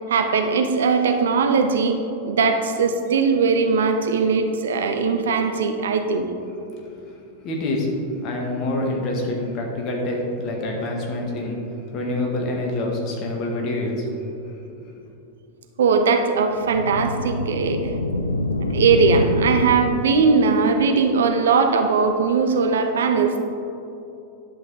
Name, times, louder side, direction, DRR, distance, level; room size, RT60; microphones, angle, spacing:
voice 1, 0.1-2.0 2.2-6.3 15.8-17.9 18.7-23.4, right 5 dB, 65° right, 6 dB, 0.7 m, -20 dB
voice 2, 7.4-7.9 8.2-11.6 11.9-14.1 14.3-14.4 14.7-14.8, left 2 dB, 35° left, -1 dB, 1.6 m, -26 dB
sound 1, 16.5-20.4, left 2 dB, 80° left, 0.4 m, -26 dB
10.5 x 5.9 x 3.9 m, 2.8 s
figure-of-eight pair, 90°, 0 cm